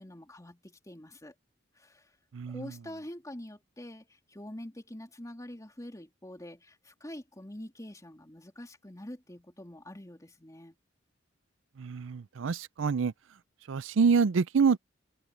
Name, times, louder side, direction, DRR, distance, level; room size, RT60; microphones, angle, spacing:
voice 1, 0.0-1.3 1.8-2.1 2.5-10.7, left 1 dB, 20° left, 3.1 m, -45 dB
voice 2, 2.3-2.7 11.8-13.1 13.7-14.8, right 5 dB, 80° right, 0.5 m, -26 dB
head